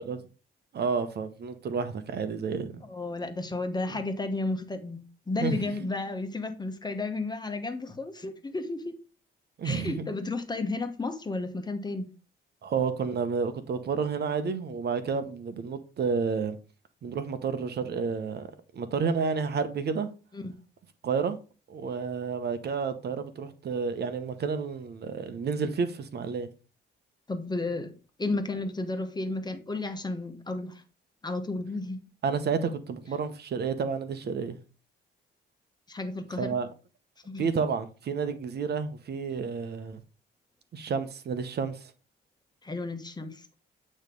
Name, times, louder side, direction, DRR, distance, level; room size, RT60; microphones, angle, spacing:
voice 1, 0.7-2.8 5.4-5.9 9.6-10.1 12.6-16.6 17.0-18.5 18.7-20.1 21.0-21.4 21.7-26.5 32.2-34.6 36.4-36.7 37.4-40.0 40.7-41.9, right 5 dB, 55° right, 1.0 m, -30 dB
voice 2, 2.9-8.9 9.6-12.1 20.3-20.6 27.3-27.9 28.2-30.8 31.2-32.0 35.9-36.5 37.2-37.5 42.6-43.4, left 2 dB, 20° left, 1.2 m, -33 dB
8.8 x 3.2 x 5.2 m
cardioid pair, 90°, 20 cm